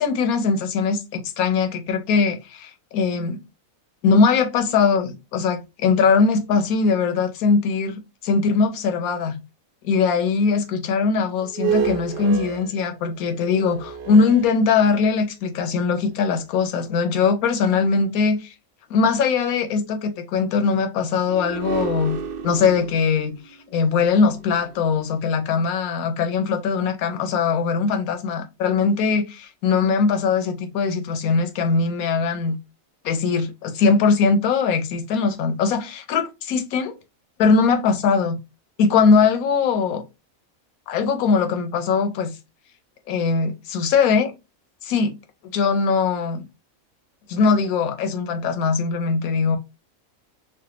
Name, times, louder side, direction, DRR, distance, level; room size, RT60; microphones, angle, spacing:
voice 1, 0.0-3.4 4.0-9.4 9.8-18.5 18.9-22.2 22.4-23.4 23.7-32.6 33.0-36.9 37.4-38.4 38.8-40.0 40.9-42.4 43.1-44.3 44.8-45.1 45.5-46.4 47.3-49.6, left 5 dB, 90° left, 1.1 m, -21 dB
sound 1, 11.4-15.2 15.9-16.0 21.3-25.5, right 7 dB, 75° right, 0.5 m, -31 dB
3.3 x 2.2 x 2.8 m
omnidirectional pair, 1.5 m